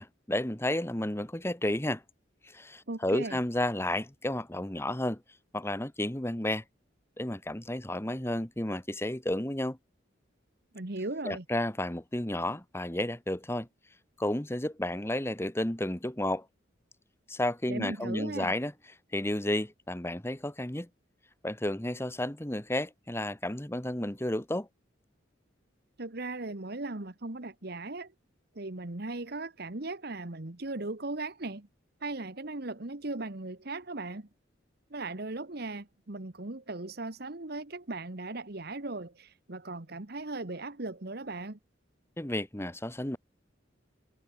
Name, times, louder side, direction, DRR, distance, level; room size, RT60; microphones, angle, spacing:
voice 1, 0.0-2.0 2.5-5.2 5.5-6.6 7.2-9.8 11.2-13.7 14.2-16.4 17.3-18.7 19.1-20.9 21.4-24.7 42.2-43.2, left 1 dB, 15° left, 1.5 m, -32 dB
voice 2, 2.9-3.4 10.7-11.4 17.7-18.5 26.0-28.1 28.5-31.7 32.0-34.3 34.9-41.6, right 2 dB, 55° right, 1.5 m, -38 dB
head